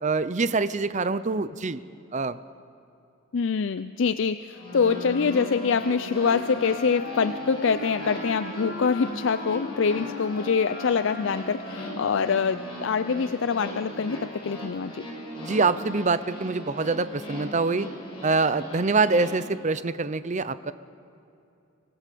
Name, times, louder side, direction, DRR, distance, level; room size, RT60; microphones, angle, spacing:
voice 1, 0.0-1.8 2.1-2.4 15.4-17.9 18.2-20.7, right 3 dB, 35° right, 14 dB, 0.6 m, -25 dB
voice 2, 3.3-15.0, left 5 dB, 60° left, 12 dB, 0.5 m, -25 dB
sound 1, 4.5-19.3, equal, 25° left, 6.6 m, -39 dB
Wind instrument woodwind instrument, 4.6-13.3, left 2 dB, 45° left, 7.3 m, -39 dB
25.0 x 18.5 x 6.9 m, 2.7 s
head